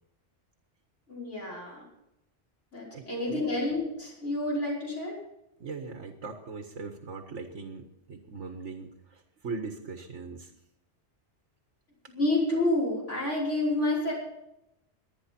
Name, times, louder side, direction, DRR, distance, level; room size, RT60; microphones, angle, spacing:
voice 1, 1.1-1.8 2.7-5.2 12.1-14.1, left 2 dB, 85° left, -4 dB, 5.8 m, -29 dB
voice 2, 2.9-3.4 5.6-10.5, right 4 dB, 85° right, 5 dB, 1.7 m, -40 dB
23.0 x 9.7 x 4.4 m, 0.86 s
omnidirectional pair, 1.2 m